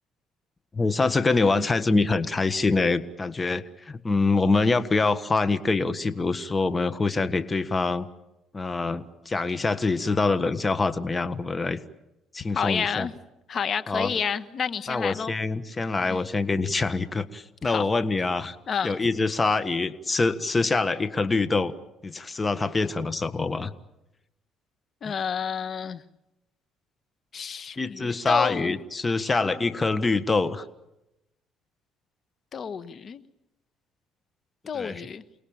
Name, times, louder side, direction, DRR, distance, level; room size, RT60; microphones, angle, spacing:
voice 1, 0.7-8.1 8.5-11.8 12.3-13.1 13.9-14.2 14.9-18.5 18.8-21.7 22.0-23.7 25.0-25.1 27.8-30.6 34.7-35.0, left 3 dB, 25° left, 12 dB, 1.5 m, -25 dB
voice 2, 12.5-13.1 13.5-15.3 16.0-16.2 17.6-17.8 18.7-19.0 25.0-26.0 27.3-28.7 29.2-29.7 32.5-33.2 34.7-35.2, left 7 dB, 50° left, 12 dB, 1.4 m, -30 dB
29.0 x 20.0 x 8.8 m, 0.91 s
supercardioid pair, 80°, 0 cm